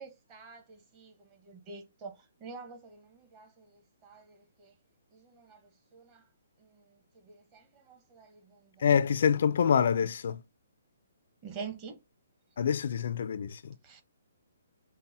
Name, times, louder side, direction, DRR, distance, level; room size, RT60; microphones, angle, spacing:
voice 1, 0.0-4.7 5.1-5.6 5.9-6.2 6.6-6.8 7.1-8.9 11.4-12.0 13.8-14.0, right 5 dB, 25° right, 0.9 m, -47 dB
voice 2, 8.8-10.4 12.6-13.8, left 7 dB, 60° left, 0.3 m, -26 dB
5.3 x 2.0 x 2.7 m
hypercardioid pair, 160°, 0 cm